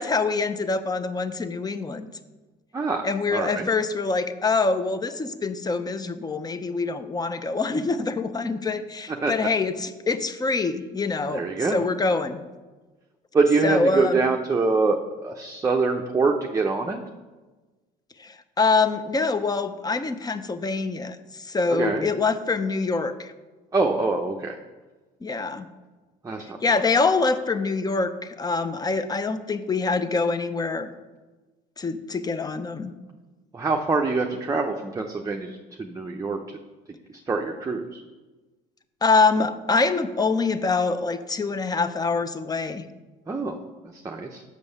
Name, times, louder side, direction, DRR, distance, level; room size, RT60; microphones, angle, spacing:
voice 1, 0.0-2.1 3.0-12.4 13.6-14.2 18.2-23.3 25.2-25.7 26.6-30.9 31.8-32.9 39.0-42.9, left 4 dB, 20° left, 11 dB, 0.6 m, -25 dB
voice 2, 2.7-3.7 9.1-9.3 11.3-11.8 13.3-17.0 21.7-22.1 23.7-24.6 26.2-26.6 33.5-36.4 37.3-38.0 43.3-43.6 43.8-44.4, right 3 dB, 15° right, 2 dB, 0.6 m, -25 dB
6.3 x 5.3 x 6.6 m, 1.2 s
supercardioid pair, 85°, 19 cm